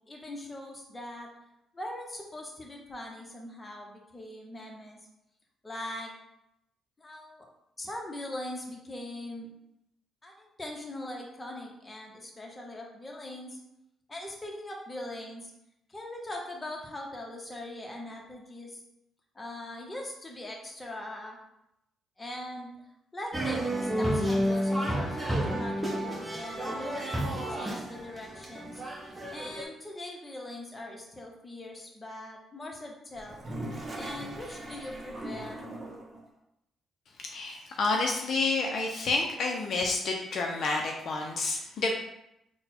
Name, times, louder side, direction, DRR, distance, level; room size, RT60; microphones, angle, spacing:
voice 1, 0.1-1.3 1.7-5.0 5.6-6.1 7.0-7.5 7.8-9.5 10.2-13.6 14.1-15.5 15.9-18.8 19.3-21.4 22.2-22.7 23.1-28.8 29.3-33.4 33.9-35.7, left 1 dB, 20° left, 0 dB, 0.9 m, -41 dB
sound 1, 23.3-29.6, equal, 15° right, 1.0 m, -31 dB
Toilet flush, 33.1-36.2, right 1 dB, 35° right, 0.7 m, -40 dB
voice 2, 37.2-41.9, left 3 dB, 60° left, 1 dB, 0.5 m, -29 dB
4.0 x 2.2 x 4.3 m, 0.82 s
cardioid pair, 90°, 0 cm